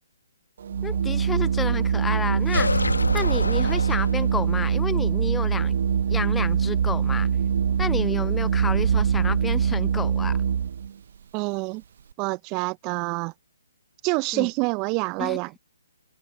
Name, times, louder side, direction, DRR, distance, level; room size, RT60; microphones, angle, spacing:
Organ, 0.6-10.9, right 8 dB, 50° right, 0.9 m, -23 dB
voice 1, 0.8-5.7 6.1-7.3 7.8-10.4 14.3-14.5 15.2-15.4, left 5 dB, 10° left, 0.6 m, -31 dB
sound 1, 2.5-4.5, left 3 dB, 75° left, 1.2 m, -27 dB
voice 2, 11.3-11.8 12.2-13.3 14.0-15.6, right 29 dB, 25° right, 0.9 m, -27 dB
figure-of-eight pair, 130°, 0 cm